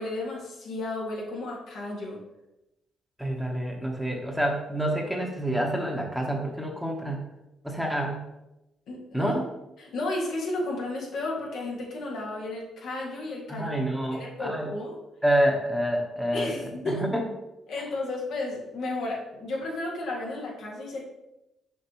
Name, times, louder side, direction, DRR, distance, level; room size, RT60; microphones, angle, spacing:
voice 1, 0.0-2.2 8.9-9.4 9.8-13.8 14.1-15.0 16.3-17.0 17.7-21.0, left 2 dB, 75° left, -3 dB, 2.0 m, -33 dB
voice 2, 3.2-7.2 7.6-8.2 9.1-9.5 13.5-14.7 15.2-17.2, right 1 dB, ahead, 1 dB, 1.0 m, -28 dB
6.6 x 5.0 x 3.0 m, 0.93 s
cardioid pair, 90°, 0 cm